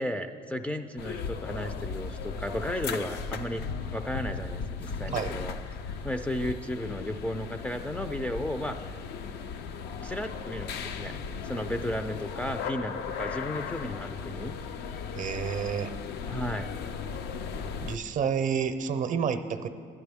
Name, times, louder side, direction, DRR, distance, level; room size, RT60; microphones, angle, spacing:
voice 1, 0.0-3.6 3.9-5.6 5.8-9.0 10.0-11.1 11.4-14.5 16.3-16.7, left 1 dB, 10° left, 3 dB, 0.3 m, -34 dB
sound 1, 1.0-18.0, left 5 dB, 80° left, 0.5 m, -36 dB
voice 2, 15.1-15.9 17.8-19.7, right 7 dB, 50° right, 9 dB, 0.6 m, -29 dB
12.0 x 9.6 x 3.5 m, 2.3 s
cardioid pair, 110°, 17 cm